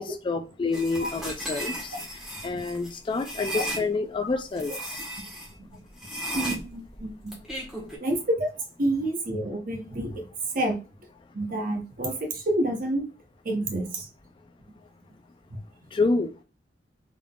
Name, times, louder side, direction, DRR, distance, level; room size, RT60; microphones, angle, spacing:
voice 1, 0.0-2.0 2.4-5.0 15.9-16.3, left 3 dB, 25° left, 7 dB, 0.3 m, -28 dB
sound 1, 0.7-3.8 4.5-5.5 6.0-8.0, right 1 dB, ahead, 1.2 m, -35 dB
voice 2, 6.3-7.3 8.0-8.5 8.8-10.3 10.5-10.8 11.3-13.1 13.4-14.1 15.5-15.6, right 1 dB, 45° right, 4 dB, 0.8 m, -28 dB
3.6 x 3.6 x 2.3 m, 0.33 s
head